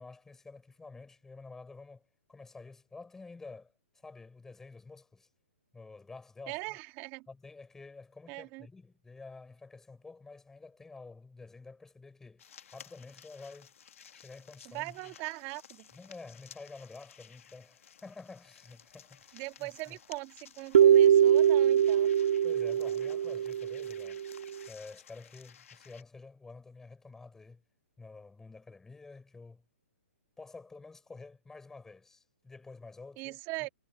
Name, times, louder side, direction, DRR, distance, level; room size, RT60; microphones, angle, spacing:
voice 1, 0.0-5.3 5.7-6.8 7.3-13.7 14.1-15.1 15.9-20.0 22.4-24.2 24.7-27.6 28.0-29.6 30.4-33.4, left 3 dB, 5° left, 5.3 m, -50 dB
voice 2, 6.5-7.3 8.3-8.7 14.6-15.9 19.3-22.1 33.2-33.7, right 23 dB, 25° right, 2.3 m, -40 dB
sound 1, 12.4-26.0, left 8 dB, 70° left, 1.7 m, -56 dB
sound 2, 20.7-24.5, right 9 dB, 65° right, 0.3 m, -23 dB
hypercardioid pair, 155°, 8 cm